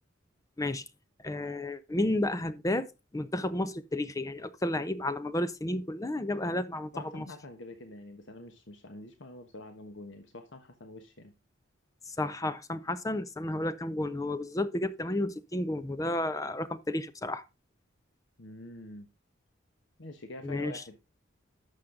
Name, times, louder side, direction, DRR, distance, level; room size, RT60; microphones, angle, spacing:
voice 1, 1.2-2.9 3.1-7.3 12.2-17.4 20.4-20.7, left 1 dB, 15° left, 0.5 m, -32 dB
voice 2, 6.9-11.3 18.4-19.1 20.0-20.9, left 2 dB, 65° left, 1.2 m, -46 dB
11.5 x 6.5 x 3.8 m
head